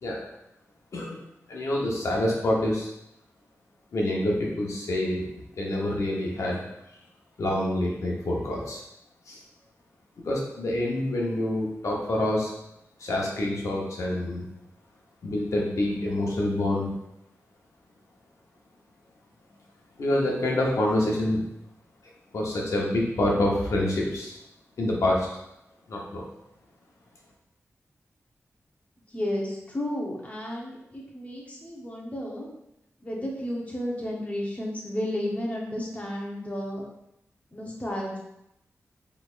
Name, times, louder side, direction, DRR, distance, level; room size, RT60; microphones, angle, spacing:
voice 1, 1.5-2.9 3.9-5.2 5.6-6.6 7.4-8.8 9.3-9.4 10.2-12.5 13.0-14.5 15.2-16.9 20.0-21.4 22.3-24.4 24.8-25.3 25.9-26.2, left 1 dB, 75° left, -3 dB, 0.9 m, -26 dB
voice 2, 29.1-32.5 33.0-36.8 37.5-38.2, left 1 dB, 25° left, -3 dB, 1.0 m, -32 dB
4.1 x 3.3 x 2.5 m, 0.84 s
wide cardioid pair, 95°, 5 cm